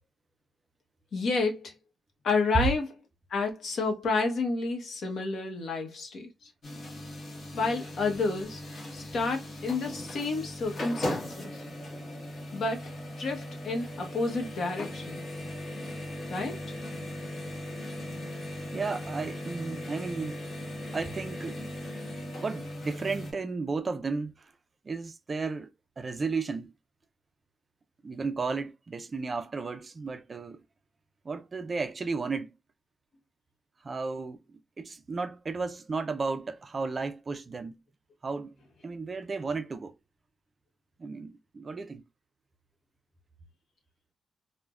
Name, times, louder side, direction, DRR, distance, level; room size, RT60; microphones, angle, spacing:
voice 1, 1.1-1.7 2.2-2.9 3.3-6.3 7.5-8.6 8.9-11.6 12.5-12.9 13.2-15.2 16.3-16.6, left 3 dB, 60° left, 0.9 m, -30 dB
sound 1, 6.6-23.3, left 1 dB, 40° left, 1.3 m, -38 dB
voice 2, 18.7-20.4 20.9-21.6 22.4-24.5 24.8-26.7 28.0-30.6 31.2-32.6 33.8-37.8 38.2-38.5 38.8-39.9 41.0-42.0, right 4 dB, 30° right, 0.3 m, -34 dB
3.2 x 2.1 x 2.3 m
wide cardioid pair, 160°, 0 cm